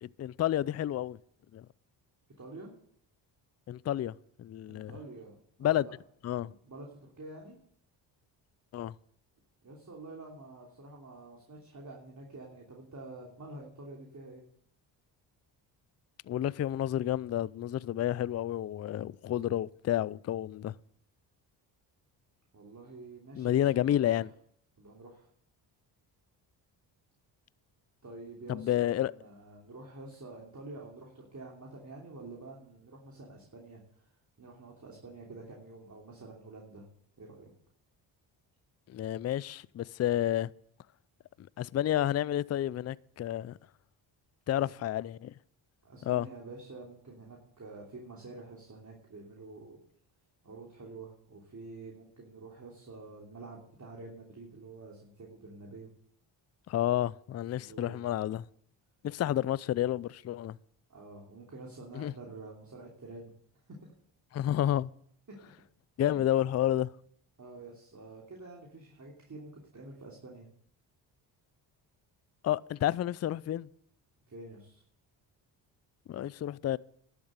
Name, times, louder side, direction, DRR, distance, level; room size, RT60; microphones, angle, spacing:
voice 1, 0.0-1.2 1.5-1.7 3.7-4.9 5.6-5.9 6.2-6.5 8.7-8.9 16.3-20.7 23.4-24.3 28.5-29.1 38.9-40.5 41.4-43.6 44.5-45.3 46.0-46.3 56.7-58.5 59.0-60.6 61.9-62.1 64.3-64.9 66.0-66.9 72.4-73.7 76.1-76.8, left 12 dB, 35° left, 0.4 m, -30 dB
voice 2, 2.4-2.7 4.7-5.9 6.4-7.5 9.6-14.4 22.5-24.2 24.8-25.3 28.0-34.1 34.4-36.8 37.2-37.5 44.6-44.7 45.8-49.8 50.4-55.9 57.5-58.0 60.9-63.3 63.8-63.9 65.3-65.5 66.1-66.2 67.4-70.5 74.3-74.8, right 2 dB, 35° right, 3.1 m, -48 dB
12.0 x 7.1 x 8.1 m
supercardioid pair, 60°, 49 cm